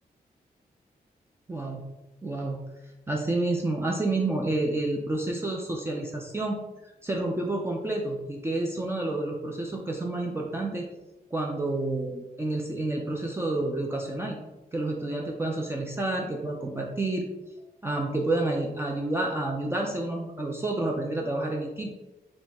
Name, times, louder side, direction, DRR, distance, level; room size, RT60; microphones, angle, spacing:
voice 1, 1.5-1.8 2.2-2.6 3.1-6.6 7.0-10.9 11.3-14.4 14.7-17.2 17.8-21.9, right 2 dB, 15° right, -1 dB, 0.4 m, -29 dB
4.2 x 2.3 x 3.5 m, 1.0 s
wide cardioid pair, 160°, 16 cm